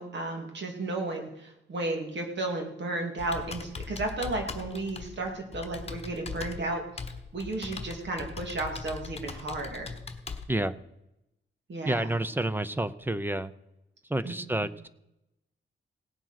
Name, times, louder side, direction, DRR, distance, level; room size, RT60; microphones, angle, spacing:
voice 1, 0.0-6.8 7.3-9.9 11.7-12.2 14.2-14.7, right 2 dB, 60° right, 3 dB, 2.7 m, -33 dB
Computer keyboard, 3.2-10.4, left 4 dB, 30° left, 1.3 m, -40 dB
voice 2, 11.8-13.5 14.1-14.9, right 1 dB, 10° right, 14 dB, 0.5 m, -29 dB
17.5 x 7.5 x 5.8 m, 0.87 s
wide cardioid pair, 135°, 20 cm